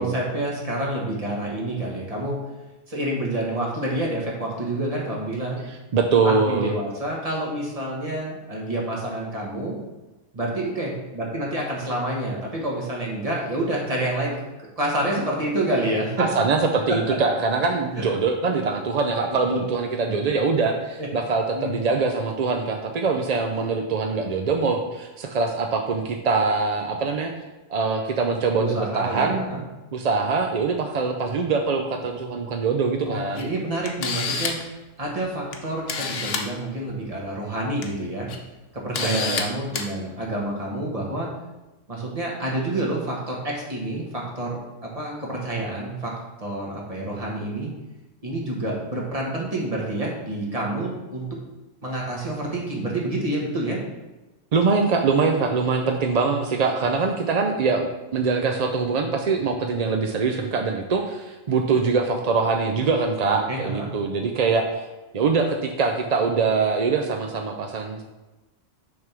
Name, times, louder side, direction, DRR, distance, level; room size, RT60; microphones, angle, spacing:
voice 1, 0.0-2.4 2.9-5.6 6.2-9.8 10.3-16.2 16.9-17.0 18.0-18.1 19.5-19.7 20.1-20.3 21.0-21.1 21.5-21.7 28.6-29.6 33.1-34.5 35.0-38.3 38.7-41.3 41.9-46.1 46.4-47.7 48.2-51.3 51.8-53.8 63.5-63.9, right 1 dB, 30° right, -3 dB, 1.5 m, -28 dB
voice 2, 5.9-6.7 16.2-27.3 27.7-29.6 29.9-33.5 39.0-39.4 54.5-64.9 65.1-68.0, right 4 dB, 55° right, 4 dB, 0.4 m, -23 dB
Camera, 33.4-33.5 33.9-34.7 35.5-35.6 35.9-36.5 37.6-37.8 38.3-38.4 38.9-39.4 39.7-39.9, left 5 dB, 70° left, 1.1 m, -27 dB
6.4 x 3.6 x 6.0 m, 1.1 s
omnidirectional pair, 1.3 m